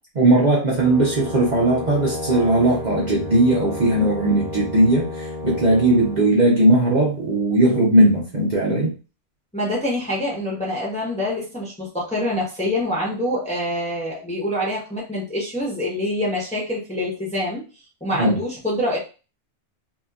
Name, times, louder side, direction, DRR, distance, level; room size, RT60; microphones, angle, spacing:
voice 1, 0.2-8.9 18.2-18.4, right 1 dB, 45° right, -4 dB, 0.8 m, -18 dB
Brass instrument, 0.7-6.2, left 2 dB, 55° left, 1.3 m, -32 dB
voice 2, 9.5-17.6 18.0-19.0, left 1 dB, 5° left, -4 dB, 0.8 m, -25 dB
2.9 x 2.4 x 2.3 m, 0.33 s
omnidirectional pair, 1.2 m